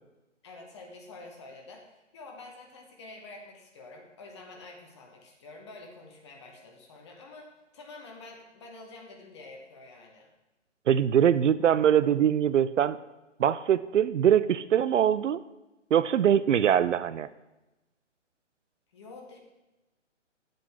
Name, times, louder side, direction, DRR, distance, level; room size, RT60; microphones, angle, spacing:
voice 1, 0.4-10.3 18.9-19.4, left 2 dB, 25° left, 1 dB, 1.0 m, -48 dB
voice 2, 10.9-13.0 13.4-15.4 15.9-17.3, right 9 dB, 75° right, 15 dB, 0.5 m, -23 dB
10.5 x 7.6 x 3.5 m, 1.0 s
hypercardioid pair, 165°, 37 cm